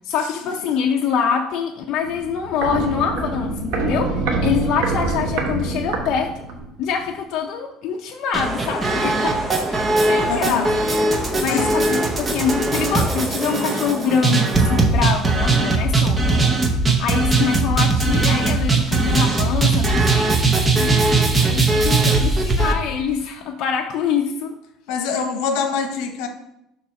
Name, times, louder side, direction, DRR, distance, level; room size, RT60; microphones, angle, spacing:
voice 1, 0.0-6.4 6.8-9.3 9.6-10.7 11.4-16.2 17.0-20.9 21.4-24.5, left 7 dB, 55° left, 1 dB, 0.5 m, -25 dB
Walk footsteps, 2.0-6.7 7.0-7.1, right 3 dB, 90° right, 1.1 m, -25 dB
sound 1, 8.3-22.7, right 3 dB, 15° right, 0.7 m, -19 dB
voice 2, 10.3-10.8 11.2-11.8 24.9-26.3, left 6 dB, 75° left, 6 dB, 0.9 m, -25 dB
7.2 x 2.8 x 5.7 m, 0.83 s
cardioid pair, 150°, 0 cm